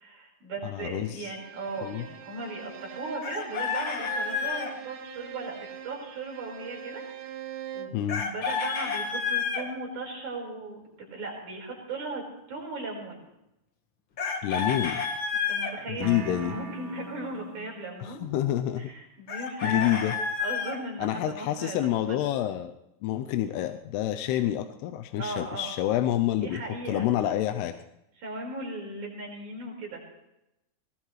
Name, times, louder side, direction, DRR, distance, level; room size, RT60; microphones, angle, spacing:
voice 1, 0.0-7.0 7.4-12.2 12.5-13.2 15.5-18.3 18.8-20.0 20.4-21.8 22.1-22.2 25.1-25.7 26.4-27.1 28.2-30.0, right 2 dB, 45° right, -2 dB, 6.3 m, -37 dB
voice 2, 0.6-1.3 1.8-2.1 7.9-8.2 14.4-15.0 15.9-16.6 18.0-18.9 19.6-20.1 21.0-22.8 23.0-26.6 26.9-27.8, left 12 dB, 85° left, 7 dB, 2.7 m, -28 dB
Bowed string instrument, 1.2-8.1, right 8 dB, 65° right, 2.6 m, -43 dB
Chicken rooster, 3.2-4.7 8.1-9.6 14.2-15.7 19.3-20.8, left 5 dB, 60° left, 1.3 m, -30 dB
sound 1, 16.0-17.9, right 5 dB, 85° right, 3.6 m, -40 dB
20.0 x 20.0 x 3.3 m, 0.87 s
omnidirectional pair, 4.7 m